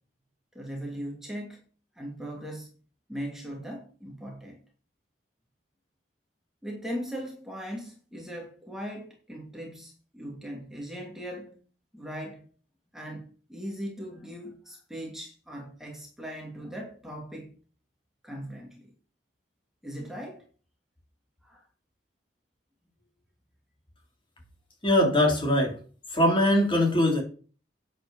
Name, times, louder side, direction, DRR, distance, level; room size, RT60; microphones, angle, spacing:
voice 1, 0.5-1.6 2.0-2.7 3.1-4.6 6.6-11.6 11.9-12.4 12.9-17.5 18.2-18.9 19.8-20.4 21.4-21.6, equal, ahead, 2.4 m, -39 dB
voice 2, 24.8-25.8 26.1-27.2, left 1 dB, 30° left, 3.6 m, -22 dB
9.2 x 8.5 x 5.5 m
head